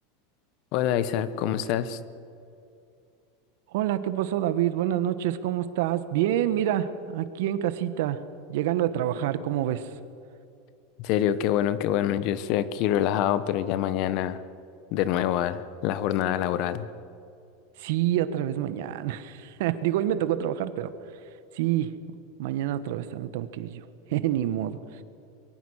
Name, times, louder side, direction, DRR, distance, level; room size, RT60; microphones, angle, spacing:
voice 1, 0.7-2.0 11.0-14.4 14.9-16.9, left 11 dB, 55° left, 14 dB, 1.3 m, -26 dB
voice 2, 3.7-8.2 8.5-9.9 17.8-20.9 21.5-21.9 22.4-23.8 24.1-24.8, right 12 dB, 70° right, 12 dB, 1.4 m, -27 dB
24.0 x 22.5 x 6.5 m, 2.6 s
supercardioid pair, 115°, 0 cm